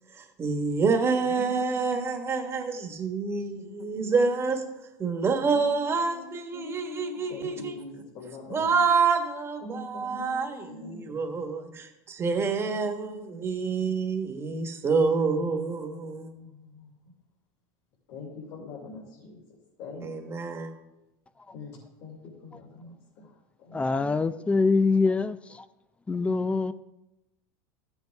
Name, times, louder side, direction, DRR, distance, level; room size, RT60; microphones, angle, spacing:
voice 1, 0.1-4.6 5.0-7.7 8.5-16.3 20.0-20.7, right 4 dB, 25° right, 1.4 m, -27 dB
voice 2, 1.3-2.6 3.5-4.3 4.7-4.8 5.6-6.3 6.5-8.7 9.6-11.4 12.3-13.4 13.7-13.9 15.3-16.9 18.1-19.4 19.8-20.3 21.5-23.3 23.6-24.1, left 3 dB, 65° left, 3.4 m, -43 dB
voice 3, 23.7-25.6 26.1-26.7, left 4 dB, 10° left, 0.5 m, -24 dB
14.0 x 8.1 x 3.5 m
supercardioid pair, 120°, 10 cm